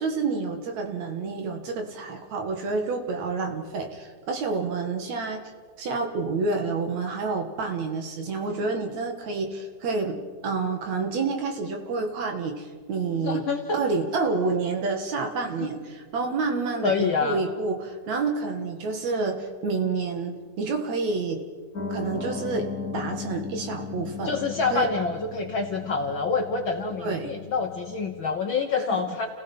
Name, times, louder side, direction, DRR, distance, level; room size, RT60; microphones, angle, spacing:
voice 1, 0.0-5.4 5.8-10.2 10.4-13.5 13.7-21.4 21.9-22.7 22.9-24.4 24.7-24.9 27.0-27.3 28.9-29.2, right 4 dB, 65° right, 4 dB, 3.1 m, -28 dB
voice 2, 13.2-13.8 15.6-15.7 16.8-17.4 24.2-29.3, left 4 dB, 60° left, 4 dB, 1.4 m, -27 dB
Piano, 21.7-28.3, left 4 dB, 35° left, 2.3 m, -37 dB
29.5 x 16.5 x 5.6 m, 1.5 s
omnidirectional pair, 3.5 m